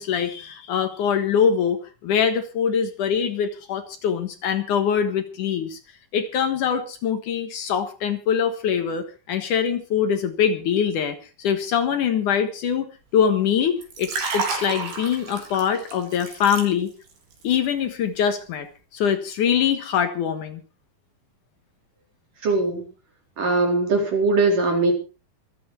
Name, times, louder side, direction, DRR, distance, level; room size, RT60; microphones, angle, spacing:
voice 1, 0.0-5.8 6.1-16.9 17.4-18.7 18.9-20.6, left 7 dB, 65° left, 8 dB, 2.7 m, -23 dB
Liquid, 13.8-17.1 17.4-17.7, right 4 dB, 80° right, 5.4 m, -30 dB
voice 2, 22.4-22.9 23.4-24.9, right 3 dB, 60° right, 2 dB, 6.0 m, -20 dB
25.5 x 8.6 x 4.4 m, 0.33 s
omnidirectional pair, 4.2 m